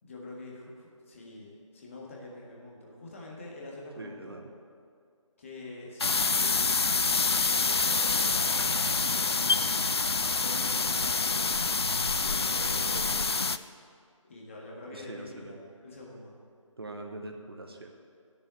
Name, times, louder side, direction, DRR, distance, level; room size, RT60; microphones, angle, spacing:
voice 1, 0.0-4.4 5.4-9.7 10.4-11.7 12.2-13.5 14.2-16.4, left 2 dB, 25° left, -3 dB, 1.6 m, -45 dB
voice 2, 4.0-4.5 14.9-15.7 16.8-17.9, right 2 dB, 45° right, 3 dB, 1.1 m, -43 dB
sound 1, 6.0-13.6, left 4 dB, 50° left, 0.4 m, -27 dB
sound 2, 6.5-7.9 8.2-11.1 11.6-13.3, right 3 dB, 65° right, 0.6 m, -45 dB
10.5 x 7.0 x 8.6 m, 2.3 s
figure-of-eight pair, 155°, 17 cm